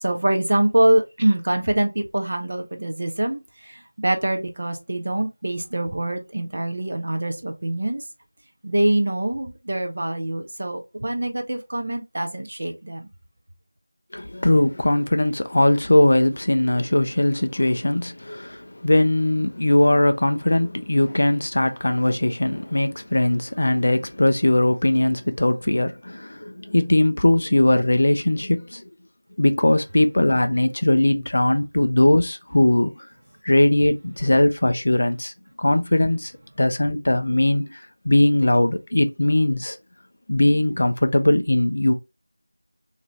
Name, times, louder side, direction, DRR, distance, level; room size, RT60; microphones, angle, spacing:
voice 1, 0.0-8.0 8.6-13.1, right 1 dB, 25° right, 0.5 m, -24 dB
voice 2, 14.1-28.8 29.4-33.0 33.4-35.3 35.6-36.3 36.6-37.7 38.1-39.8 40.3-41.9, left 1 dB, 30° left, 0.4 m, -20 dB
4.0 x 2.6 x 3.2 m
figure-of-eight pair, 180°, 0 cm